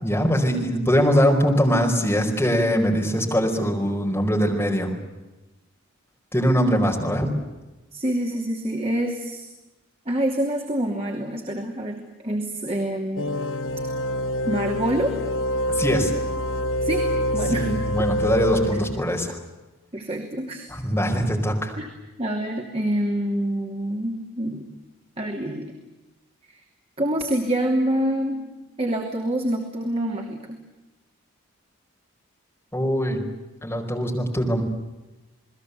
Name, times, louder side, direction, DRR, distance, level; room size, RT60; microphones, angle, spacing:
voice 1, 0.0-4.9 6.3-7.3 15.8-16.1 17.5-19.4 20.7-21.7 32.7-33.2 33.6-34.6, equal, 10° left, 0 dB, 4.9 m, -22 dB
voice 2, 7.9-9.5 10.1-13.3 14.5-15.1 16.8-17.7 19.9-20.7 21.8-21.9 22.2-24.7 25.2-25.7 26.5-26.6 27.0-30.6, right 1 dB, 30° right, 1 dB, 2.9 m, -26 dB
sound 1, 13.2-19.3, equal, 65° left, 1.0 m, -26 dB
29.5 x 20.5 x 8.3 m, 1.1 s
head